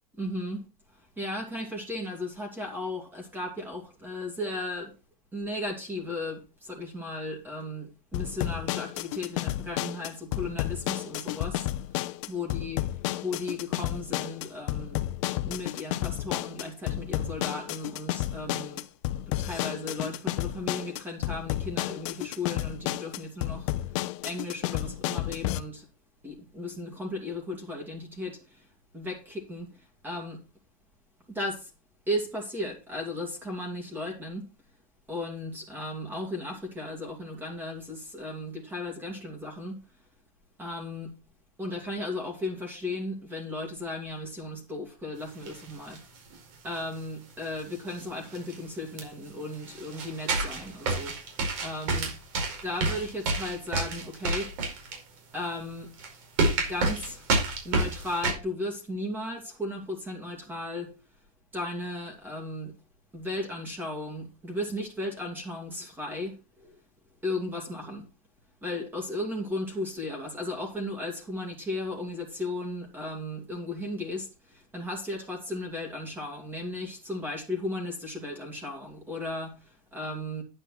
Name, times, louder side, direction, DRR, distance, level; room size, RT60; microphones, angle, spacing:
voice 1, 0.1-0.6 1.2-4.9 5.3-11.7 12.3-12.8 13.2-15.0 15.4-18.8 19.3-23.7 24.2-25.9 26.2-28.7 28.9-29.7 30.0-30.4 31.3-31.7 32.1-34.5 35.1-39.8 40.6-41.1 41.6-46.0 46.6-51.2 51.6-52.1 52.6-54.5 55.3-55.9 56.6-57.3 57.6-60.9 61.5-62.7 63.1-66.8 67.2-68.1 68.6-80.4, left 1 dB, 10° right, 2.5 m, -35 dB
sound 1, 8.1-25.6, left 15 dB, 55° left, 0.8 m, -32 dB
sound 2, 45.5-46.0 46.3-46.4 47.6-47.7 48.0-48.1 48.3-48.5 49.0-49.1 49.5-55.0 55.6-55.7 56.0-56.1 56.4-58.3, right 3 dB, 60° right, 4.9 m, -29 dB
10.5 x 8.2 x 4.2 m
supercardioid pair, 160°, 19 cm